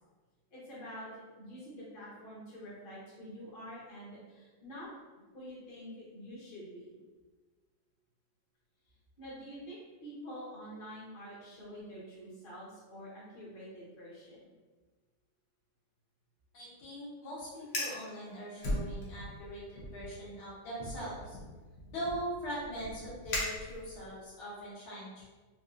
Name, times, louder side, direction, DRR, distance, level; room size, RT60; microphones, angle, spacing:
voice 1, 0.5-1.1 1.4-4.9 5.3-7.0 9.2-14.5, equal, 35° left, -8 dB, 1.0 m, -47 dB
voice 2, 16.5-21.4 21.9-25.3, equal, 80° left, -7 dB, 1.9 m, -41 dB
Fire, 17.6-18.0 18.6-19.4 19.7-20.1 20.8-24.1, left 1 dB, 60° left, 1.1 m, -38 dB
4.1 x 2.5 x 2.4 m, 1.4 s
omnidirectional pair, 2.2 m